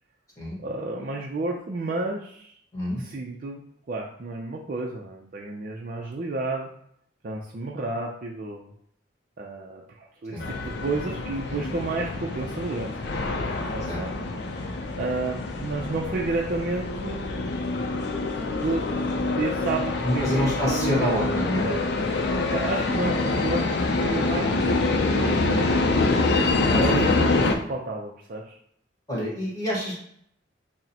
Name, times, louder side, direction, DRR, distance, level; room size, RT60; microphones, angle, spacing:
voice 1, 0.6-2.5 3.0-3.6 3.9-6.7 7.2-8.7 9.4-13.3 13.7-14.1 14.5-17.2 18.4-21.4 21.6-21.8 22.2-25.8 26.8-27.4 27.7-28.6, right 3 dB, 50° right, -1 dB, 0.4 m, -31 dB
voice 2, 2.7-3.0 10.3-10.4 11.5-11.6 13.9-14.0 20.0-21.7 26.7-27.4 29.1-29.9, equal, 20° left, -5 dB, 1.5 m, -27 dB
sound 1, 10.4-27.5, left 3 dB, 60° left, 0.5 m, -26 dB
6.2 x 2.1 x 2.8 m, 0.67 s
head